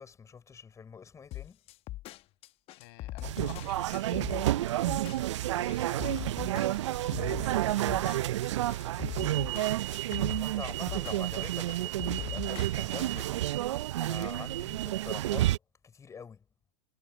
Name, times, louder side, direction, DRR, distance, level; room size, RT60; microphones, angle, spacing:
voice 1, 0.0-1.6 10.4-13.4 14.0-15.6 15.8-16.4, left 6 dB, 20° left, 6.2 m, -45 dB
sound 1, 1.3-13.3, left 16 dB, 40° left, 1.0 m, -41 dB
voice 2, 2.8-4.7 5.5-6.9 7.3-8.4, left 29 dB, 55° left, 6.1 m, -50 dB
sound 2, 3.2-15.6, right 14 dB, 70° right, 0.4 m, -30 dB
hypercardioid pair, 105°, 16 cm